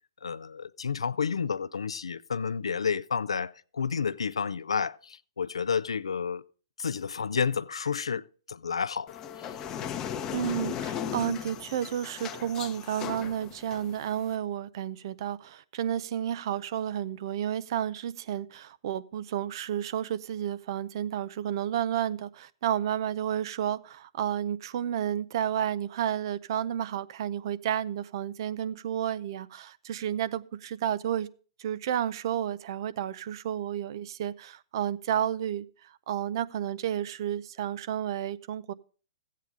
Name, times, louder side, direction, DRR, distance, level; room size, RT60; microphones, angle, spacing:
voice 1, 0.2-6.4 6.8-9.1 9.4-9.5, left 6 dB, 85° left, 0.4 m, -30 dB
sound 1, 9.1-14.3, left 9 dB, 20° left, 0.7 m, -37 dB
voice 2, 10.3-31.3 31.6-38.7, right 10 dB, 55° right, 0.5 m, -31 dB
14.0 x 8.4 x 3.7 m
hypercardioid pair, 130°, 3 cm